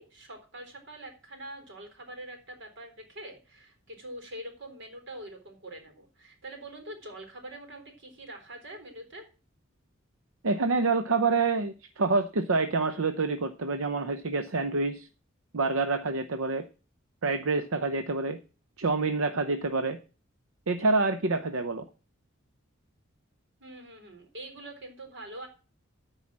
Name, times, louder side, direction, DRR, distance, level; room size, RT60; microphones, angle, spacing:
voice 1, 0.0-9.3 23.6-25.5, right 1 dB, 65° right, 4 dB, 3.9 m, -44 dB
voice 2, 10.4-15.1 15.5-16.6 17.2-18.4 18.8-20.0 20.7-21.8, right 3 dB, 85° right, 9 dB, 0.8 m, -27 dB
13.5 x 4.9 x 7.4 m, 0.35 s
head